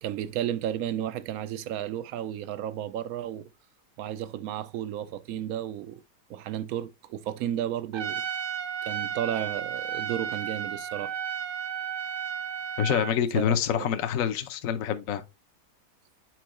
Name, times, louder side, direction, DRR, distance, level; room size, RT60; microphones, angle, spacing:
voice 1, 0.0-3.5 4.0-6.0 6.3-8.2 8.8-11.1 13.3-13.5 13.8-13.9, right 11 dB, 75° right, 1.0 m, -33 dB
Trumpet, 7.9-13.2, right 8 dB, 55° right, 0.6 m, -33 dB
voice 2, 12.8-15.2, left 9 dB, 65° left, 1.1 m, -26 dB
7.7 x 4.5 x 3.0 m
omnidirectional pair, 1.6 m